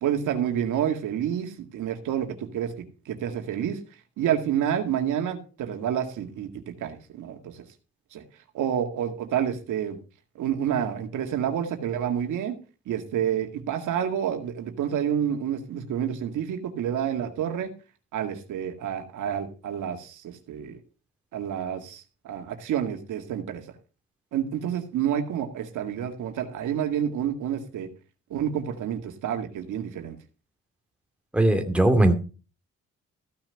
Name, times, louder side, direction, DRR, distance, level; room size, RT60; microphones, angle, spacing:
voice 1, 0.0-2.7 3.1-3.8 4.2-7.6 8.1-8.2 8.5-10.0 10.4-12.6 12.9-17.7 18.1-20.8 21.3-23.6 24.3-27.9 28.3-30.2, right 9 dB, 80° right, 5 dB, 2.0 m, -29 dB
voice 2, 31.3-32.2, right 1 dB, 5° right, 4 dB, 2.3 m, -19 dB
15.0 x 6.0 x 5.7 m, 0.35 s
cardioid pair, 90°, 30 cm